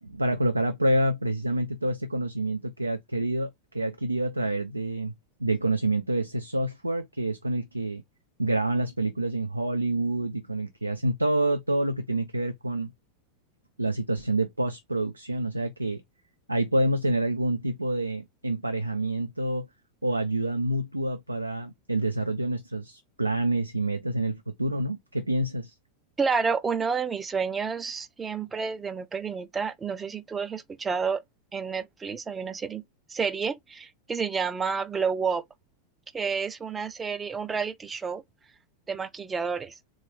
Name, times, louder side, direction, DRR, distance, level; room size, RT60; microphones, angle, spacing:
voice 1, 0.0-5.1 5.4-8.0 8.4-12.9 13.8-16.0 16.5-19.7 20.0-25.7, right 1 dB, 85° right, 0.5 m, -27 dB
voice 2, 26.2-31.2 31.5-32.8 33.1-35.4 36.1-38.2 38.9-39.7, right 5 dB, 15° right, 0.5 m, -30 dB
3.7 x 3.1 x 4.2 m
figure-of-eight pair, 90°, 0 cm